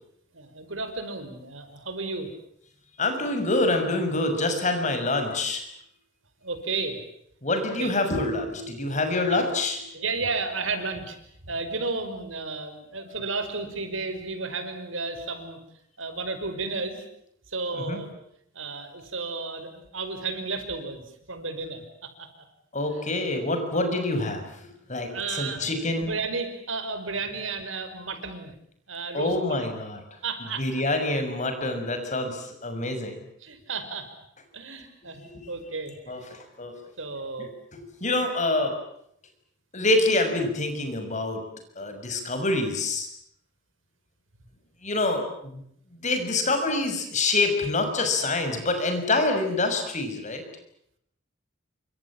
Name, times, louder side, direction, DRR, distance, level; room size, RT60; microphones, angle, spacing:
voice 1, 0.3-2.3 6.4-7.0 7.8-7.9 9.3-9.4 9.9-11.2 11.4-15.6 16.0-17.0 17.5-18.1 18.5-22.3 25.1-25.7 26.0-28.5 28.9-29.6 30.2-30.7 33.4-34.1 34.5-36.3 37.0-37.5, right 3 dB, 80° right, 9 dB, 5.5 m, -33 dB
voice 2, 3.0-5.6 7.4-10.0 17.7-18.0 22.7-26.1 29.1-30.0 30.6-33.2 35.2-35.5 36.1-36.7 38.0-38.7 39.7-41.4 41.8-43.1 44.8-45.6 46.0-50.4, left 2 dB, 40° left, 6 dB, 6.5 m, -26 dB
28.5 x 25.5 x 7.5 m, 0.71 s
head